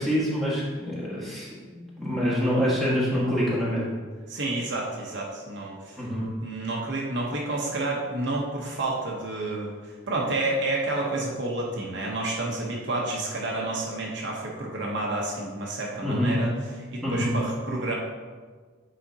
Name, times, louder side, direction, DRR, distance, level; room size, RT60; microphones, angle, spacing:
voice 1, 0.0-3.9 6.0-6.3 16.0-16.4 17.0-17.4, equal, ahead, -8 dB, 1.6 m, -26 dB
voice 2, 4.3-6.0 6.4-16.5 16.9-18.0, right 2 dB, 55° right, -2 dB, 0.9 m, -30 dB
8.6 x 5.0 x 2.8 m, 1.5 s
head